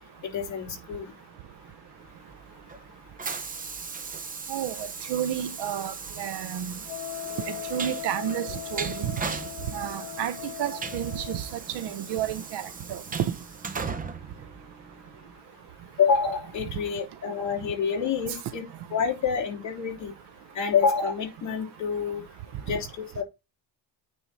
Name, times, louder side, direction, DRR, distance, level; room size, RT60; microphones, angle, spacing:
voice 1, 0.2-1.1 16.0-18.6 18.9-20.1 20.5-22.2 22.6-22.9 23.1-23.2, left 6 dB, 40° left, 3.1 m, -27 dB
Train, 2.1-15.2, right 5 dB, 20° right, 0.6 m, -38 dB
voice 2, 4.5-6.7 7.5-9.1 9.7-11.5 11.7-12.6 12.9-13.0 13.3-13.4, right 10 dB, 70° right, 0.8 m, -31 dB
Wind instrument woodwind instrument, 6.8-11.6, left 17 dB, 75° left, 1.3 m, -39 dB
9.3 x 3.7 x 4.0 m
cardioid pair, 165°, 43 cm